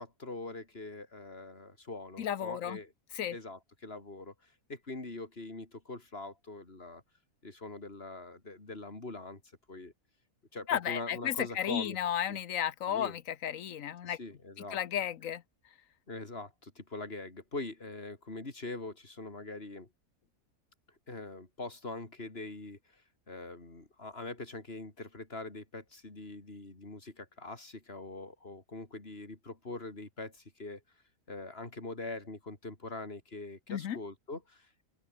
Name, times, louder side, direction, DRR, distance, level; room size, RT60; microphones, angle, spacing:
voice 1, 0.0-2.9 3.3-7.0 7.4-9.4 9.7-9.9 10.5-12.0 12.3-12.4 12.9-13.2 14.0-14.8 16.1-19.9 21.1-30.8 31.3-34.9, left 2 dB, 45° left, 4.1 m, -43 dB
voice 2, 2.2-2.8 3.1-3.4 10.7-14.2 14.7-15.4 33.7-34.0, left 10 dB, 70° left, 1.3 m, -33 dB
open air
omnidirectional pair, 1.5 m